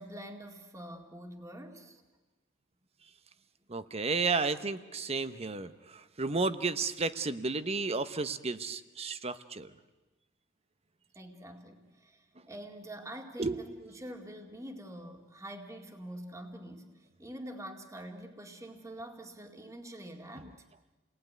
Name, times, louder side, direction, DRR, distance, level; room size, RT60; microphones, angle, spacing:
voice 1, 0.0-2.0 3.8-3.9 11.1-20.6, right 1 dB, 15° right, 4 dB, 2.1 m, -46 dB
voice 2, 3.7-9.7 13.4-13.6, right 4 dB, 30° right, 12 dB, 1.0 m, -32 dB
29.5 x 20.0 x 9.4 m, 1.2 s
head